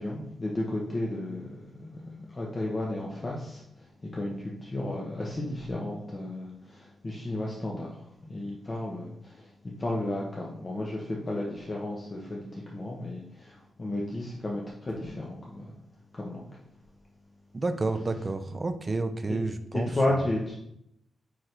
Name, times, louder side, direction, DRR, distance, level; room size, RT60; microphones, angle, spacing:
voice 1, 0.0-2.0 2.3-3.6 4.1-9.5 9.8-15.7 16.1-16.4 19.3-19.4 19.9-20.5, left 1 dB, 30° left, -3 dB, 1.1 m, -33 dB
voice 2, 17.5-19.9, right 3 dB, 30° right, 8 dB, 0.6 m, -30 dB
8.9 x 3.7 x 3.3 m, 0.78 s
wide cardioid pair, 110°, 0 cm